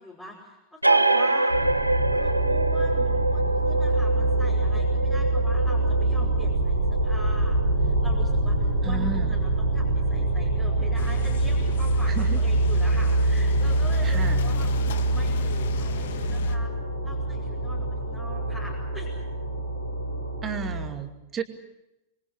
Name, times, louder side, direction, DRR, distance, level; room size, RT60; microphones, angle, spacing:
voice 1, 0.0-1.9 2.1-14.7 15.1-16.7 17.0-19.2, left 1 dB, 15° left, -2 dB, 5.7 m, -43 dB
sound 1, 0.8-8.0, right 2 dB, 85° right, 0.9 m, -26 dB
sound 2, 1.5-20.9, right 2 dB, 85° left, 5.1 m, -25 dB
voice 2, 8.8-9.3 12.1-12.4 14.0-14.4 20.4-21.4, right 5 dB, 25° right, 7 dB, 2.5 m, -32 dB
sound 3, 11.0-16.6, left 9 dB, 60° left, 1.6 m, -37 dB
27.0 x 23.5 x 6.5 m, 0.92 s
figure-of-eight pair, 90°, 0 cm